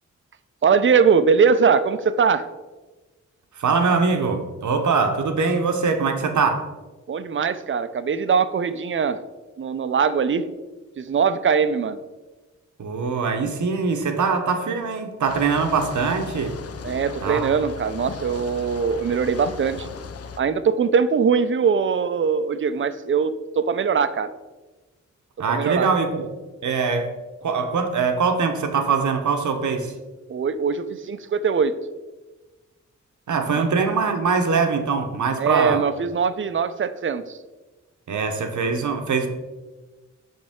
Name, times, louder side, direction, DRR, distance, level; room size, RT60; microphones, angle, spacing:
voice 1, 0.6-2.5 7.1-9.2 9.6-10.5 11.0-12.0 16.8-19.9 20.4-24.3 25.5-25.9 30.3-31.8 33.6-33.7 35.4-37.4, right 6 dB, 40° right, 13 dB, 0.4 m, -21 dB
voice 2, 3.5-6.7 12.8-16.6 17.2-17.5 25.4-26.3 26.6-27.1 27.4-29.9 33.3-35.8 38.1-39.3, right 5 dB, 70° right, 6 dB, 0.8 m, -22 dB
sound 1, 15.3-20.4, left 5 dB, 55° left, 0.5 m, -37 dB
5.8 x 5.3 x 3.5 m, 1.2 s
cardioid pair, 70°, 30 cm